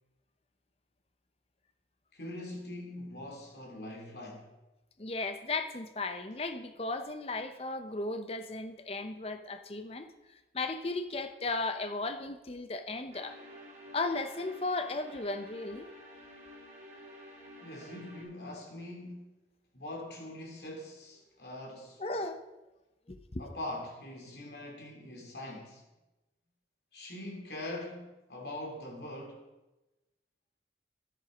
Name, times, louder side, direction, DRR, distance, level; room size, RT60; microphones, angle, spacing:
voice 1, 2.1-4.5 17.6-19.3 19.7-22.0 23.4-25.8 26.9-29.4, left 1 dB, 70° left, 0 dB, 3.1 m, -43 dB
voice 2, 5.0-10.1 10.5-13.4 13.9-15.9 22.0-22.4 23.1-23.4, left 3 dB, 35° left, 9 dB, 0.7 m, -35 dB
sound 1, 13.1-18.2, equal, 40° right, 3.3 m, -51 dB
11.0 x 10.0 x 5.1 m, 1.0 s
head